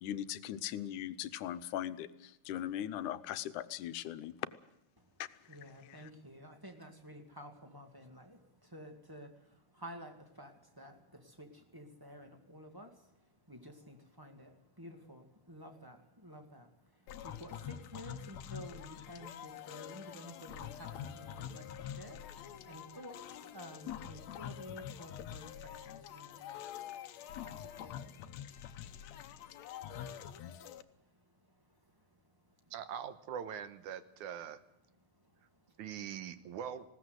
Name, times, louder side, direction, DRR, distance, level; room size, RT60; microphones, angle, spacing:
voice 1, 0.0-2.1 2.5-4.3 5.9-6.0, left 11 dB, 85° left, 12 dB, 2.4 m, -39 dB
voice 2, 5.5-28.3 29.0-29.7 30.4-32.2 35.2-35.8, equal, 10° right, 4 dB, 1.6 m, -53 dB
sound 1, 17.1-30.8, left 10 dB, 70° left, 2.0 m, -46 dB
voice 3, 32.7-34.6 35.8-36.9, right 8 dB, 80° right, 11 dB, 2.6 m, -42 dB
20.0 x 17.5 x 8.0 m, 0.86 s
omnidirectional pair, 3.5 m